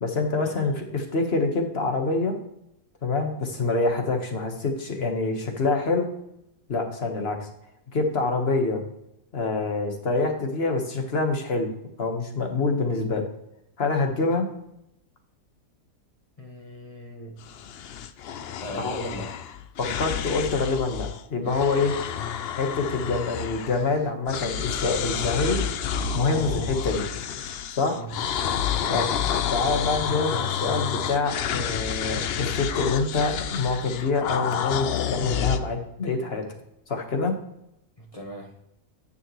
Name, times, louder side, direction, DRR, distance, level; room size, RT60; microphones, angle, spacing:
voice 1, 0.0-2.3 3.0-6.1 6.7-7.5 7.9-8.8 9.3-11.7 12.0-13.2 13.8-14.5 18.8-18.9 19.8-21.9 22.6-25.6 26.1-27.0 27.7-28.0 28.9-29.1 29.5-36.4 36.9-37.3, left 3 dB, 40° left, 4 dB, 1.4 m, -26 dB
voice 2, 16.4-17.4 18.6-19.3 26.3-26.6 27.8-28.1 28.7-29.0 38.0-38.5, equal, 25° left, -1 dB, 1.0 m, -38 dB
sound 1, 17.4-21.2 21.5-24.0 24.3-35.6, left 8 dB, 85° left, 0.5 m, -29 dB
9.9 x 6.8 x 3.0 m, 0.81 s
omnidirectional pair, 1.7 m